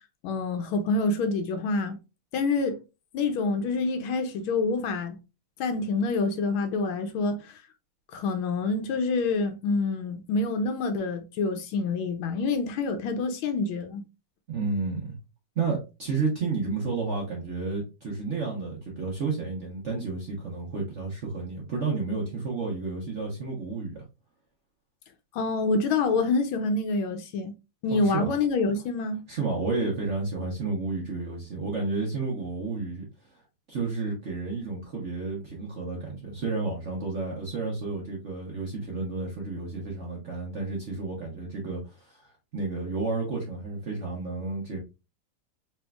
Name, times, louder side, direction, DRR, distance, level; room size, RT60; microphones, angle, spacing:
voice 1, 0.2-2.0 2.3-2.8 3.1-5.2 5.6-7.6 8.1-14.0 25.3-27.5 27.8-29.2, left 3 dB, 75° left, 1.4 m, -27 dB
voice 2, 14.5-15.1 15.6-24.0 27.9-28.3 29.3-33.0 33.7-44.8, right 3 dB, 50° right, 0.9 m, -31 dB
4.3 x 3.6 x 2.3 m
omnidirectional pair, 2.4 m